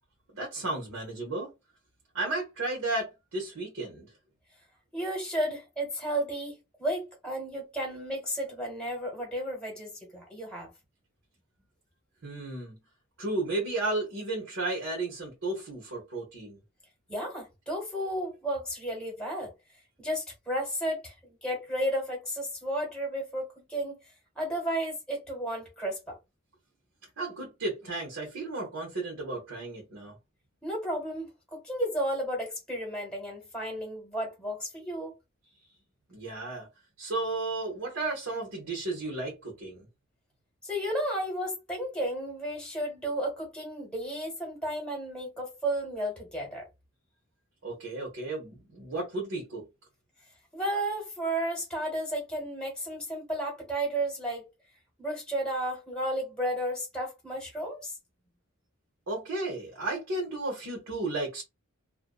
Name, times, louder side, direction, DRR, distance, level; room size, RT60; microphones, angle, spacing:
voice 1, 0.3-1.5 2.1-4.1 12.2-12.8 13.2-16.6 27.2-30.1 36.1-36.7 37.0-39.9 47.6-49.6 59.1-61.4, right 2 dB, 75° right, 1.0 m, -33 dB
voice 2, 4.9-10.7 17.1-19.5 20.0-24.0 24.3-26.2 30.6-35.1 40.6-46.7 50.5-54.5 55.0-58.0, right 1 dB, 5° left, 1.0 m, -33 dB
2.5 x 2.2 x 2.3 m
head